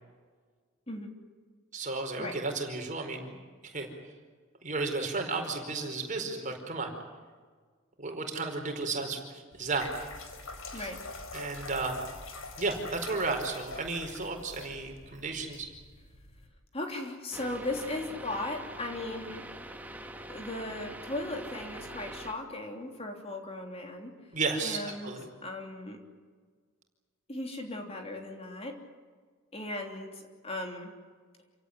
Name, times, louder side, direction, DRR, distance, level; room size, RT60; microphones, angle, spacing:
voice 1, 1.7-3.4 3.6-3.9 4.6-6.9 8.0-9.9 10.7-10.9 11.3-12.0 12.6-15.7 24.3-25.3, right 3 dB, 35° right, 4 dB, 4.7 m, -33 dB
sound 1, 9.5-16.5, left 3 dB, 75° left, 4.4 m, -45 dB
voice 2, 16.7-19.4 20.3-24.1 24.6-25.1 25.4-26.0 27.3-28.8 29.5-30.9, left 2 dB, 30° left, 3 dB, 3.2 m, -37 dB
sound 2, 17.3-22.3, right 1 dB, 10° right, 1.9 m, -44 dB
28.0 x 17.5 x 9.8 m, 1.5 s
head